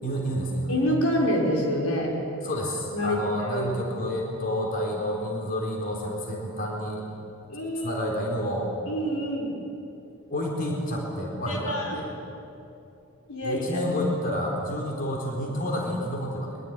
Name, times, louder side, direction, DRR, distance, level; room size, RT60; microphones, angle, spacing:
voice 1, 0.0-0.7 2.4-7.0 7.8-8.7 10.3-12.1 13.4-16.6, equal, 40° left, 0 dB, 4.3 m, -29 dB
voice 2, 0.7-2.2 2.9-3.2 3.5-3.7 7.5-8.0 8.9-9.5 11.5-12.0 13.3-13.8, equal, 85° left, 0 dB, 5.2 m, -27 dB
23.5 x 21.5 x 9.9 m, 2.7 s
head